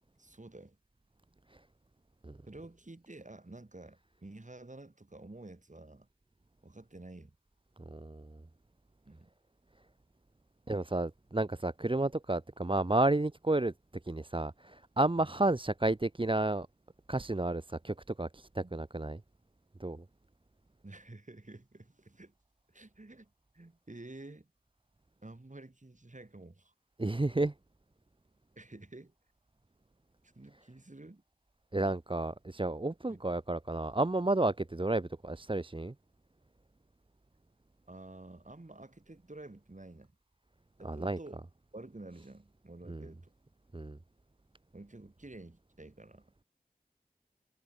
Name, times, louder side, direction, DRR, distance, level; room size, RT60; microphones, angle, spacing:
voice 1, 0.2-0.8 2.5-6.1 6.6-7.4 9.1-9.3 15.2-15.3 18.6-18.8 20.8-22.3 22.7-24.5 25.2-26.7 28.6-29.1 30.3-31.2 33.1-33.2 37.9-40.1 40.8-41.4 41.7-43.3 44.7-46.4, right 2 dB, 50° right, 5.0 m, -50 dB
voice 2, 7.9-8.4 10.7-13.7 14.0-16.7 17.1-19.2 19.8-20.0 27.0-27.5 31.7-35.9 40.8-41.2 42.9-43.1 43.7-44.0, right 2 dB, 35° right, 0.9 m, -31 dB
wide cardioid pair, 45°, 16 cm